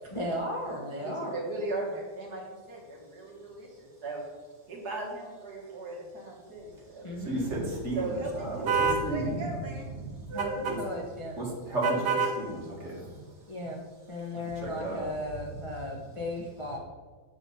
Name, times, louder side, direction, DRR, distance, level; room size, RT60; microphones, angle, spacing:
voice 1, 0.1-1.4 7.0-7.5 10.3-11.4 13.5-13.8 14.1-16.8, left 1 dB, 45° left, -3 dB, 0.4 m, -35 dB
voice 2, 0.7-4.2 4.7-7.1 7.9-9.9 10.3-10.7, right 2 dB, 50° right, -3 dB, 2.0 m, -38 dB
voice 3, 7.2-9.5 9.9-10.3 10.7-10.8 11.4-13.2 14.3-15.1, right 1 dB, 35° right, -4 dB, 2.2 m, -34 dB
sound 1, 8.7-9.0 10.4-10.8 11.8-12.4, right 5 dB, 80° right, 1.8 m, -26 dB
7.3 x 6.8 x 4.1 m, 1.4 s
omnidirectional pair, 2.2 m